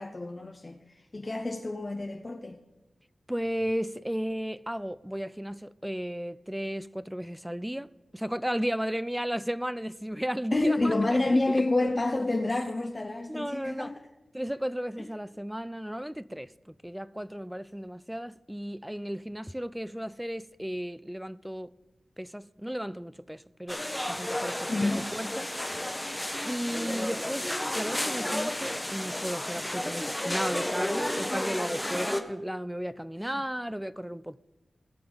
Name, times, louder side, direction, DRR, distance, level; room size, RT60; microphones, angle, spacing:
voice 1, 0.0-2.6 10.5-14.0 24.7-25.1, left 2 dB, 35° left, 0.7 m, -28 dB
voice 2, 3.3-11.6 12.5-12.6 13.3-13.9 14.3-21.7 22.2-23.8 24.1-25.5 26.4-34.4, equal, 5° right, 0.3 m, -34 dB
sound 1, 23.7-32.2, left 1 dB, 15° left, 1.0 m, -32 dB
17.0 x 6.9 x 3.9 m
cardioid pair, 55°, 0 cm